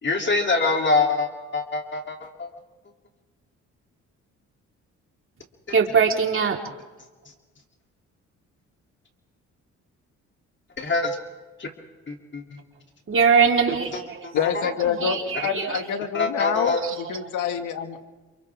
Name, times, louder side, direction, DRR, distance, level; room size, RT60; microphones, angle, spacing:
voice 1, 0.0-2.5 10.8-11.1 11.6-11.7 12.1-12.4 13.9-14.5 14.9-15.0 16.1-16.8, left 3 dB, 40° left, 2 dB, 3.2 m, -25 dB
voice 2, 5.7-6.6 13.1-14.3 15.0-15.8 16.8-17.0, right 6 dB, 45° right, 1 dB, 4.1 m, -21 dB
voice 3, 14.3-15.2 15.4-18.0, left 8 dB, 80° left, 6 dB, 2.1 m, -26 dB
29.5 x 28.0 x 3.7 m, 1.2 s
cardioid pair, 90°, 30 cm